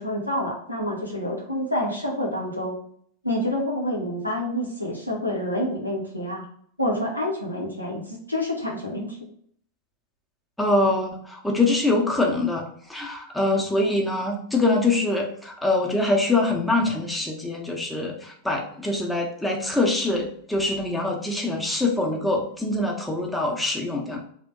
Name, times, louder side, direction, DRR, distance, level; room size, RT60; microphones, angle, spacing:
voice 1, 0.0-2.8 3.2-6.4 6.8-9.2, left 1 dB, 90° left, -2 dB, 0.8 m, -28 dB
voice 2, 10.6-12.6 12.9-24.2, left 2 dB, 5° left, -1 dB, 0.7 m, -24 dB
3.3 x 2.1 x 3.6 m, 0.63 s
figure-of-eight pair, 90°, 0 cm